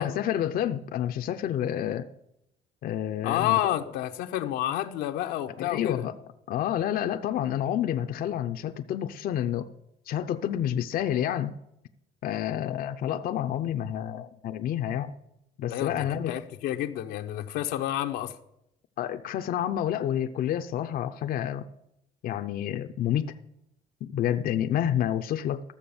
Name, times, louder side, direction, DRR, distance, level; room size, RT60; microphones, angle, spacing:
voice 1, 0.0-2.1 2.8-3.6 5.6-6.1 6.5-9.7 10.1-11.5 12.2-15.1 15.6-16.4 19.0-21.7 22.2-23.3 24.0-25.6, left 10 dB, 60° left, 0.6 m, -29 dB
voice 2, 3.2-6.0 15.7-18.4, left 13 dB, 90° left, 0.9 m, -29 dB
13.0 x 6.9 x 7.0 m
cardioid pair, 110°, 17 cm